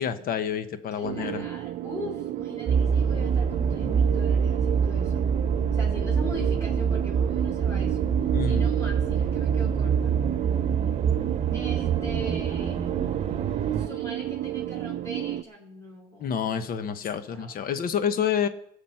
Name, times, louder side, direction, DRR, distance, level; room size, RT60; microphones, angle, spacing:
voice 1, 0.0-1.4 8.3-8.7 16.2-18.5, left 8 dB, 60° left, 11 dB, 1.1 m, -28 dB
voice 2, 0.9-5.3 5.7-8.0 8.4-10.1 11.5-12.9 13.7-17.6, equal, 15° left, -1 dB, 4.0 m, -41 dB
sound 1, 1.0-15.4, right 13 dB, 75° right, 0.6 m, -32 dB
sound 2, 2.7-13.9, right 6 dB, 40° right, 1.6 m, -25 dB
18.5 x 7.2 x 5.8 m, 0.75 s
cardioid pair, 110°, 17 cm